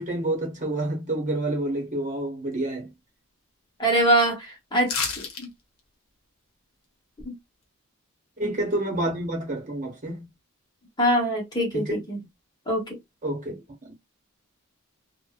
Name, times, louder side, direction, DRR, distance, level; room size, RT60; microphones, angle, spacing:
voice 1, 0.0-2.9 8.4-10.3 11.7-12.0 13.2-13.9, right 1 dB, 35° right, 1.0 m, -29 dB
voice 2, 3.8-5.5 7.2-7.4 11.0-12.2 12.7-13.0, right 1 dB, 20° left, 0.9 m, -24 dB
sound 1, 4.9-5.4 5.8-5.9, left 5 dB, 70° left, 0.8 m, -29 dB
2.6 x 2.2 x 2.2 m
head